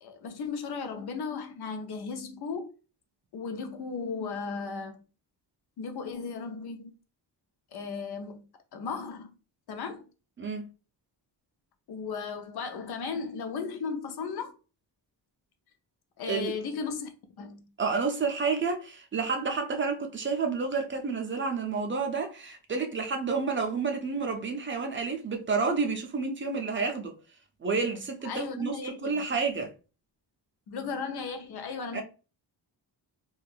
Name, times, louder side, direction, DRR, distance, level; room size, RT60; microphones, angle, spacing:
voice 1, 0.0-2.7 3.3-5.0 5.8-6.9 7.7-8.4 8.7-9.3 9.7-10.0 11.9-14.5 16.2-17.1 17.4-17.7 28.2-29.2 30.7-32.0, left 5 dB, 65° left, 0.6 m, -35 dB
voice 2, 10.4-10.7 16.3-16.5 17.8-27.1 27.6-28.7 29.0-29.7 31.9-32.0, right 4 dB, 30° right, 0.4 m, -30 dB
2.4 x 2.3 x 3.4 m
wide cardioid pair, 170°, 42 cm